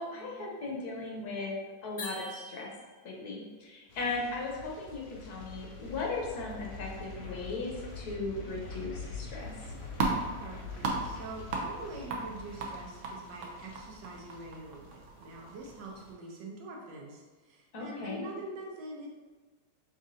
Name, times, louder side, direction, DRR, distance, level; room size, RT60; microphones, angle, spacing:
voice 1, 0.0-1.5 1.8-2.7 3.0-9.5 17.7-18.2, left 3 dB, 65° left, -2 dB, 1.2 m, -37 dB
sound 1, 2.0-3.1, left 1 dB, 30° left, 0.8 m, -43 dB
sound 2, 3.9-15.0 15.3-15.7 16.0-16.1, left 4 dB, 85° left, 0.5 m, -45 dB
sound 3, 9.4-16.1, right 3 dB, 65° right, 0.8 m, -37 dB
voice 2, 10.4-14.9 15.2-17.2 17.8-19.1, right 2 dB, 80° right, -1 dB, 1.4 m, -44 dB
6.1 x 2.4 x 2.7 m, 1.3 s
omnidirectional pair, 1.9 m